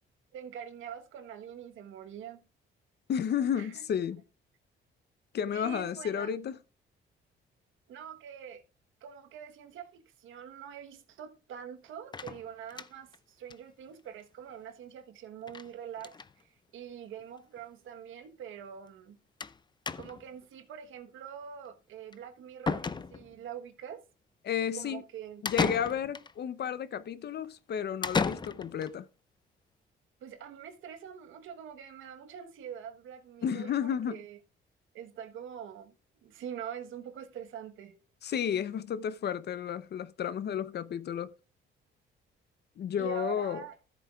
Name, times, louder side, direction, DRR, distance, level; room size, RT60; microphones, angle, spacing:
voice 1, 0.3-2.5 3.5-3.8 5.5-6.3 7.9-8.6 9.0-19.2 19.9-24.0 24.8-25.4 30.2-34.4 34.9-35.9 36.2-38.0 43.0-43.8, right 8 dB, 80° right, 1.3 m, -44 dB
voice 2, 3.1-4.2 5.3-6.6 24.4-25.0 25.4-29.1 33.4-34.2 38.2-41.3 42.8-43.6, left 8 dB, 55° left, 0.7 m, -32 dB
sound 1, 12.1-13.2 13.5-13.6 13.9-14.0 14.2-14.3 15.5-15.7 16.0-16.3 17.2-17.3 17.6-17.7 19.4-19.6 19.9-20.3 22.1-22.2 22.7-23.4 25.5-26.3 28.0-28.9, left 4 dB, 20° left, 0.5 m, -34 dB
14.0 x 7.9 x 2.4 m
cardioid pair, 90°, 20 cm